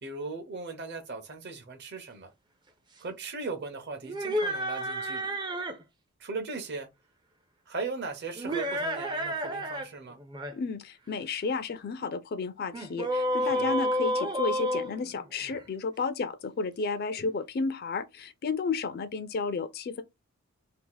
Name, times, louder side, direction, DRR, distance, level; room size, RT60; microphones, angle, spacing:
voice 1, 0.0-2.3 3.0-5.4 6.2-6.9 7.7-10.2 13.4-13.8, right 4 dB, 50° right, 0.7 m, -38 dB
sound 1, 4.0-5.8 8.3-9.9 10.2-10.5 12.7-15.6, equal, 20° right, 0.4 m, -30 dB
voice 2, 10.5-20.0, left 4 dB, 45° left, 0.4 m, -32 dB
2.8 x 2.4 x 3.8 m
head